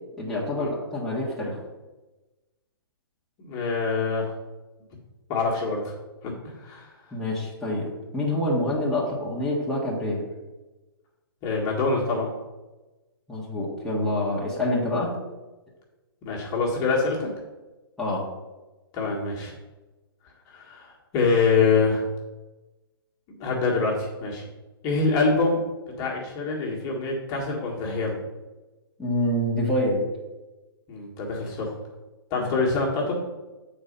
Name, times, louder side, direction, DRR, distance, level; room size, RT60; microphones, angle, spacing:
voice 1, 0.2-1.6 7.1-10.3 13.3-15.1 18.0-18.3 29.0-30.0 32.4-32.5, left 1 dB, 5° left, -7 dB, 1.7 m, -26 dB
voice 2, 3.4-4.3 5.3-5.9 6.2-6.9 11.4-12.3 16.2-17.3 18.9-19.5 20.5-22.0 23.3-24.4 24.8-25.6 26.0-28.2 30.9-31.7 32.3-33.2, left 4 dB, 30° left, -2 dB, 1.8 m, -25 dB
7.8 x 4.3 x 5.3 m, 1.1 s
figure-of-eight pair, 125°, 13 cm